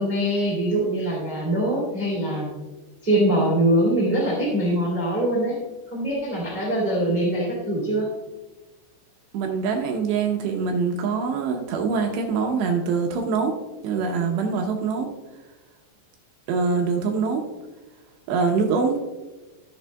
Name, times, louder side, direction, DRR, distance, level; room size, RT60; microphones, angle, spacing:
voice 1, 0.0-2.5 3.0-5.5 5.9-8.1, right 1 dB, 15° right, -4 dB, 1.7 m, -23 dB
voice 2, 9.3-13.5 13.8-15.1 16.5-17.4 18.3-19.0, right 5 dB, 80° right, 2 dB, 2.6 m, -24 dB
14.5 x 6.9 x 2.3 m, 1.2 s
omnidirectional pair, 5.7 m